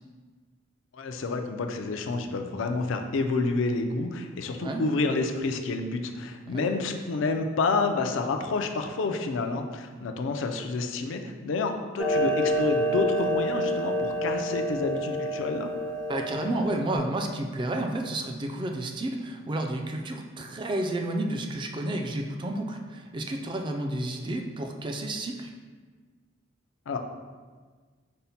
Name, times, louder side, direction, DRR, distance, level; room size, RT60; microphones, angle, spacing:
voice 1, 0.9-15.7 26.9-27.0, left 3 dB, 70° left, 5 dB, 0.4 m, -29 dB
Clock, 12.0-17.0, equal, 85° right, 1.4 m, -28 dB
voice 2, 16.1-25.5, right 1 dB, 25° right, 3 dB, 0.3 m, -31 dB
5.4 x 2.1 x 4.1 m, 1.5 s
head